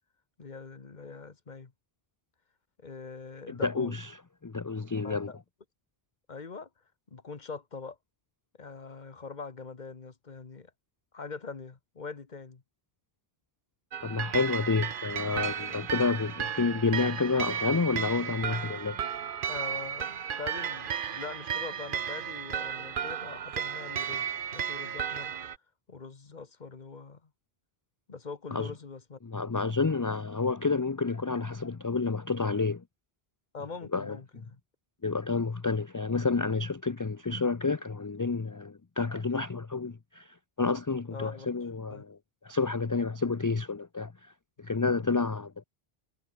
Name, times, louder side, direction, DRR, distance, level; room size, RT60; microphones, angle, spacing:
voice 1, 0.4-1.7 2.8-3.9 5.0-5.4 6.3-6.7 7.1-8.0 8.6-10.7 11.1-12.6 19.5-25.3 25.9-27.3 28.1-29.2 33.5-34.6 41.1-42.0 44.9-45.1, left 4 dB, 45° left, 1.5 m, -43 dB
voice 2, 3.5-4.1 4.4-5.3 14.0-19.0 28.5-28.7 29.2-32.8 33.9-34.2 35.0-42.2 42.4-44.3 44.6-45.7, left 4 dB, 25° left, 0.5 m, -29 dB
sound 1, 13.9-25.6, right 8 dB, 60° right, 0.9 m, -34 dB
omnidirectional pair, 1.0 m